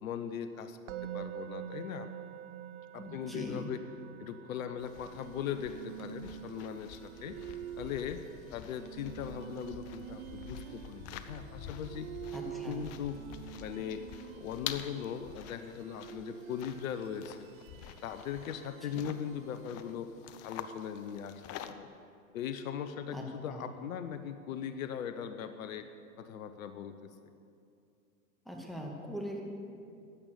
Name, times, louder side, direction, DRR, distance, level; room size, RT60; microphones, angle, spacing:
voice 1, 0.0-0.8 1.1-2.1 2.9-3.8 4.2-7.4 7.8-8.2 8.5-12.1 12.7-13.2 13.5-14.0 14.4-17.5 18.0-20.1 20.4-21.9 22.3-25.9 26.2-27.1, left 8 dB, 65° left, 10 dB, 1.0 m, -39 dB
Musical instrument, 0.9-12.0, right 11 dB, 50° right, 0.9 m, -48 dB
voice 2, 3.0-3.7 12.3-12.9 18.8-19.1 23.1-23.6 28.5-29.4, equal, ahead, 0 dB, 2.2 m, -41 dB
sound 1, 4.8-21.7, left 10 dB, 35° left, 0.8 m, -48 dB
sound 2, 5.0-20.1, right 12 dB, 70° right, 0.5 m, -48 dB
15.5 x 10.5 x 6.9 m, 2.5 s
hypercardioid pair, 110°, 44 cm